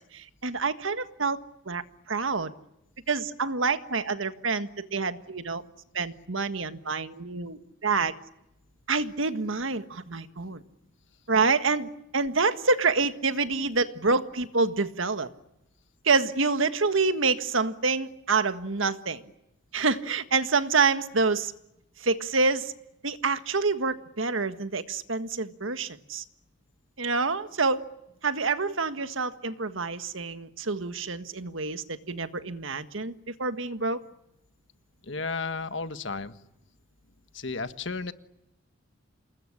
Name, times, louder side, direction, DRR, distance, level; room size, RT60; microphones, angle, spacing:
voice 1, 0.1-1.4 1.6-2.5 3.1-5.6 5.9-8.1 8.9-10.6 11.3-15.3 16.0-19.2 19.7-21.5 22.0-22.7 23.0-26.2 27.0-27.8 28.2-34.0, right 4 dB, 75° right, 10 dB, 1.6 m, -27 dB
voice 2, 35.0-36.4 37.3-38.1, left 4 dB, 65° left, 10 dB, 1.5 m, -33 dB
28.0 x 20.5 x 10.0 m, 0.88 s
head